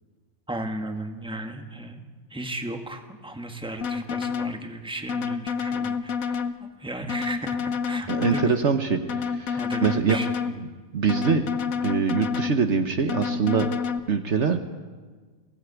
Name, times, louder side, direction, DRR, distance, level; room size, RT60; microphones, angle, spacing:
voice 1, 0.5-2.0 2.3-8.5 9.5-10.3, right 1 dB, 5° right, 5 dB, 1.7 m, -35 dB
sound 1, 3.8-4.6 5.1-6.6 7.1-8.6 9.1-10.6 11.1-12.6 13.1-14.0, left 6 dB, 85° left, 1.4 m, -28 dB
voice 2, 8.1-10.2 10.9-11.4 11.8-13.7 14.1-14.6, right 6 dB, 60° right, 7 dB, 1.3 m, -24 dB
23.5 x 16.5 x 8.2 m, 1.4 s
omnidirectional pair, 1.4 m